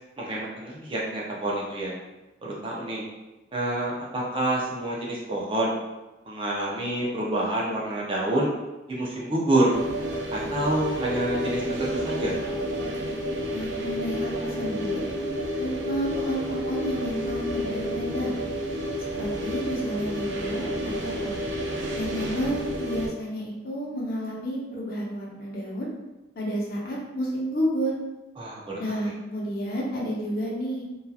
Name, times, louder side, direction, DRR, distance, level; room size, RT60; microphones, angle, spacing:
voice 1, 0.2-2.0 2.4-3.0 3.5-5.7 6.2-8.5 8.9-9.7 10.3-12.3 28.4-29.0, right 1 dB, 30° right, -4 dB, 0.5 m, -27 dB
sound 1, 9.7-23.1, equal, 85° right, 0.5 m, -30 dB
voice 2, 13.5-15.0 15.6-18.3 19.2-21.4 22.0-25.9 26.4-27.9 28.8-30.8, equal, 55° left, -4 dB, 0.6 m, -31 dB
2.8 x 2.3 x 2.3 m, 1.0 s
head